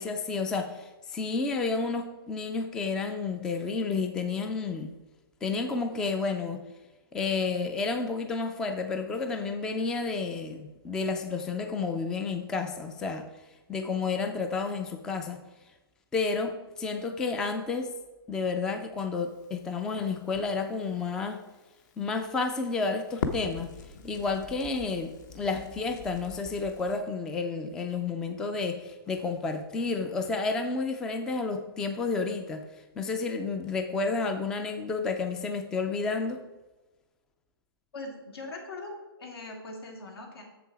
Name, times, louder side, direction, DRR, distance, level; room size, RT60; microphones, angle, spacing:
voice 1, 0.0-4.9 5.4-6.6 7.1-13.3 13.7-15.4 16.1-17.9 18.3-21.4 22.0-23.7 24.0-32.7 33.0-36.4, left 4 dB, 5° left, 6 dB, 0.3 m, -31 dB
Crackle, 19.2-27.0, left 5 dB, 45° left, 0.9 m, -42 dB
voice 2, 37.9-40.4, left 2 dB, 75° left, 1 dB, 2.8 m, -41 dB
7.4 x 6.9 x 4.7 m, 1.1 s
hypercardioid pair, 160°, 13 cm